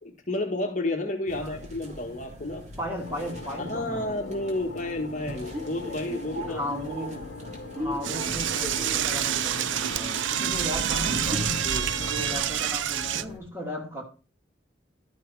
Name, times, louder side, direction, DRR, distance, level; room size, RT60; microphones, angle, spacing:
voice 1, 0.0-2.6 3.6-6.6 7.0-7.1 11.6-11.9, left 1 dB, 40° left, 1.6 m, -31 dB
sound 1, 1.3-13.4, equal, 35° right, 2.6 m, -38 dB
voice 2, 2.8-4.1 6.5-7.4 7.8-11.4 12.0-14.0, equal, 15° right, 2.8 m, -36 dB
sound 2, 3.0-12.4, left 3 dB, 90° left, 0.9 m, -42 dB
Door / Toilet flush, 8.0-13.2, right 10 dB, 80° right, 0.5 m, -28 dB
12.0 x 6.2 x 4.8 m
head